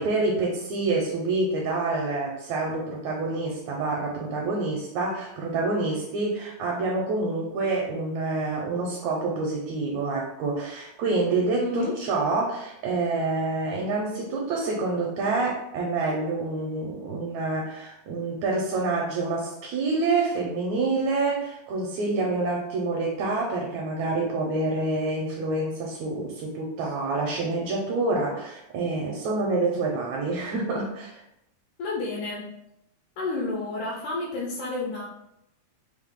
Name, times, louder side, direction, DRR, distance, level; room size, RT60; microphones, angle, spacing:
voice 1, 0.0-31.2, right 3 dB, 80° right, -1 dB, 1.7 m, -27 dB
voice 2, 11.6-12.0 31.8-32.5 33.2-35.1, left 3 dB, 80° left, -2 dB, 2.0 m, -30 dB
5.3 x 2.0 x 3.6 m, 0.81 s
omnidirectional pair, 3.9 m